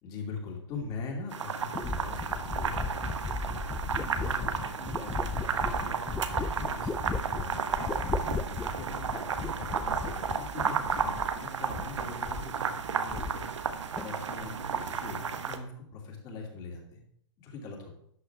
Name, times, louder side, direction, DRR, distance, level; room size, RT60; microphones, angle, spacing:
voice 1, 0.0-17.0 17.4-18.0, left 3 dB, 25° left, 0 dB, 2.7 m, -43 dB
sound 1, 1.3-15.6, right 6 dB, 80° right, 1.3 m, -33 dB
sound 2, 1.7-11.4 11.7-12.6 12.9-13.7 14.0-14.5, left 4 dB, 5° left, 0.3 m, -36 dB
12.0 x 8.6 x 3.5 m, 0.69 s
hypercardioid pair, 145°, 15 cm